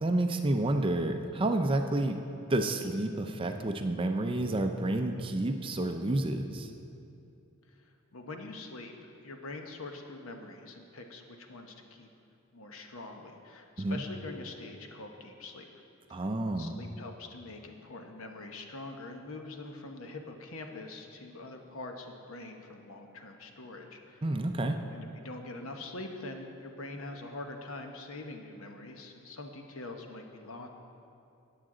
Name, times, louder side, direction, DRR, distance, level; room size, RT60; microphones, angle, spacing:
voice 1, 0.0-2.2 2.5-6.7 13.8-14.0 16.1-16.8 24.2-24.8, right 1 dB, 25° right, 6 dB, 0.4 m, -29 dB
voice 2, 7.7-12.1 12.5-15.6 16.1-16.2 16.6-24.2 24.9-30.7, left 2 dB, 65° left, 4 dB, 1.0 m, -44 dB
14.0 x 8.9 x 3.8 m, 2.7 s
head